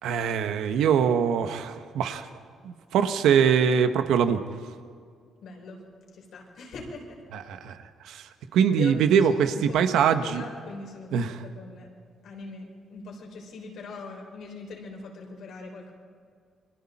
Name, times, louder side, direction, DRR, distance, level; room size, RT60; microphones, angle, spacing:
voice 1, 0.0-2.3 2.6-4.4 7.3-7.8 8.0-10.4 11.1-11.4, right 7 dB, 85° right, 8 dB, 1.4 m, -23 dB
voice 2, 5.4-5.8 6.1-7.2 8.8-9.0 9.3-11.9 12.2-15.9, left 4 dB, 70° left, 0 dB, 6.2 m, -41 dB
29.0 x 23.0 x 4.4 m, 2.1 s
cardioid pair, 90°, 0 cm